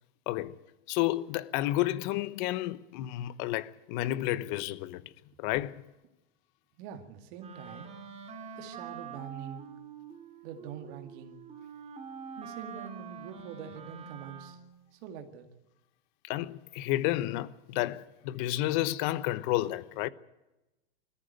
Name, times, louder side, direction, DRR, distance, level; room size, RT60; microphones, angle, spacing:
voice 1, 0.9-5.0 5.4-5.8 16.3-20.1, left 15 dB, 50° left, 1.0 m, -31 dB
voice 2, 6.8-7.9 8.6-9.7 10.4-11.4 12.4-14.6 14.9-15.5, right 8 dB, 55° right, 2.1 m, -44 dB
Wind instrument woodwind instrument, 7.4-14.8, right 6 dB, 20° right, 2.4 m, -45 dB
21.0 x 14.5 x 9.2 m
hypercardioid pair, 125°, 31 cm